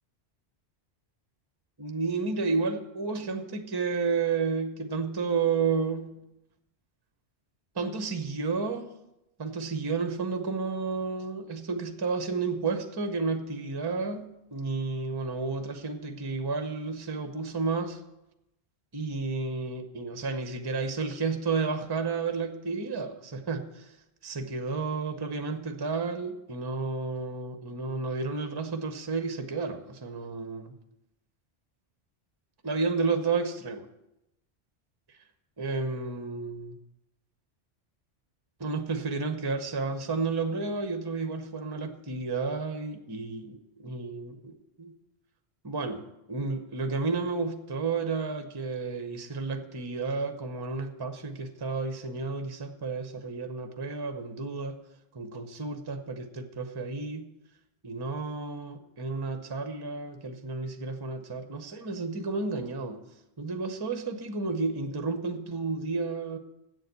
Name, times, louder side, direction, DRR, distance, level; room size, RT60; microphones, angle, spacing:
voice 1, 1.8-6.2 7.7-8.9 9.4-18.0 18.9-24.0 24.2-30.7 32.6-33.9 35.1-35.2 35.6-36.7 38.6-44.9 45.6-54.8 55.1-57.3 57.8-63.0 63.4-66.4, right 4 dB, 25° right, 8 dB, 0.7 m, -31 dB
8.1 x 7.0 x 8.0 m, 0.89 s
omnidirectional pair, 1.2 m